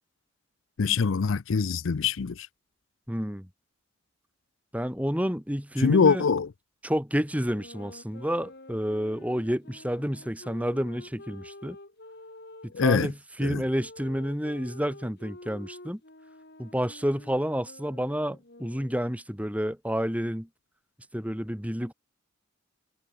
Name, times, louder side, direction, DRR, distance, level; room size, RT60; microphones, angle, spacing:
voice 1, 0.8-2.5 5.8-6.5 12.7-13.1 13.4-13.6, left 5 dB, 75° left, 0.5 m, -23 dB
voice 2, 3.1-3.5 4.7-6.3 6.8-11.8 12.6-16.0 16.6-20.5 21.1-21.9, equal, 5° right, 3.9 m, -30 dB
sound 1, 7.4-13.0 13.7-19.2, left 2 dB, 55° left, 2.9 m, -48 dB
head